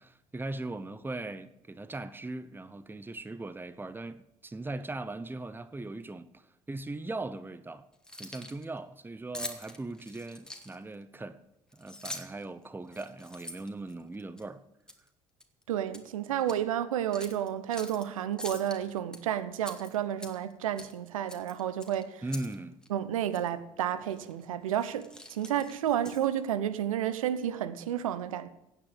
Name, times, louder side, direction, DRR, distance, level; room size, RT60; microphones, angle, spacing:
voice 1, 0.0-7.9 8.2-11.4 11.7-14.6 22.2-22.8, right 2 dB, 10° right, 0.9 m, -39 dB
Keys jangling, 7.9-8.6 9.3-10.9 11.7-12.4 12.9-14.4 14.9-15.1 15.4-16.1 16.4-16.6 17.1-18.0 18.4-19.2 19.6-20.5 20.8-21.0 21.3-22.6 22.8-22.9 23.3-23.5 24.1-24.3 24.7-26.4, left 1 dB, 5° left, 2.2 m, -44 dB
voice 2, 15.7-22.2 22.9-28.5, right 10 dB, 80° right, 0.8 m, -31 dB
16.5 x 8.9 x 6.6 m
figure-of-eight pair, 55°, 17 cm